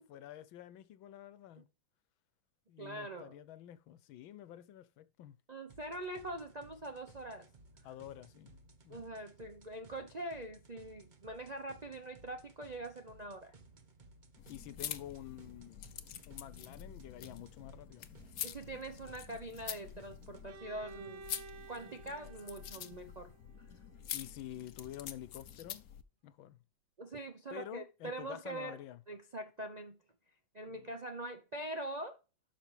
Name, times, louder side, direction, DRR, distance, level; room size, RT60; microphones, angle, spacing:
voice 1, 0.0-1.7 2.7-5.3 7.8-9.1 14.5-15.9 16.3-18.3 24.1-25.8 26.2-26.6 27.5-29.0 30.7-30.9, left 12 dB, 90° left, 1.5 m, -49 dB
voice 2, 2.8-3.3 5.5-7.5 8.9-13.5 18.4-21.2 21.7-23.3 27.0-28.8 29.1-30.0 30.5-32.2, right 1 dB, 55° right, 0.4 m, -43 dB
sound 1, 5.7-20.5, right 3 dB, 35° right, 0.8 m, -60 dB
sound 2, 14.4-26.0, left 10 dB, 60° left, 1.0 m, -46 dB
Bowed string instrument, 20.5-24.3, right 4 dB, 80° right, 1.6 m, -54 dB
12.0 x 5.7 x 3.3 m
omnidirectional pair, 2.1 m